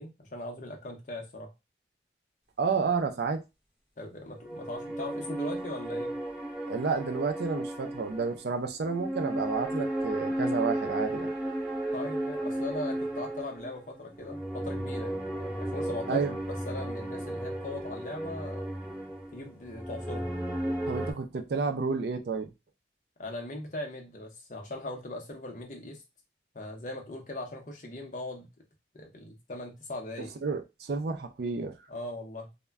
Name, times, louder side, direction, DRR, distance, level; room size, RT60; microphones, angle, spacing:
voice 1, 0.0-1.5 4.0-6.2 11.9-18.6 19.3-20.4 23.2-26.0 26.5-28.5 28.9-30.3 31.9-32.5, left 2 dB, 40° left, 0.7 m, -39 dB
voice 2, 2.6-3.4 6.7-11.3 16.1-16.3 20.9-22.5 30.4-31.8, right 5 dB, 60° right, 0.4 m, -30 dB
sound 1, 4.4-21.1, right 1 dB, 5° right, 0.6 m, -34 dB
2.1 x 2.1 x 3.4 m
head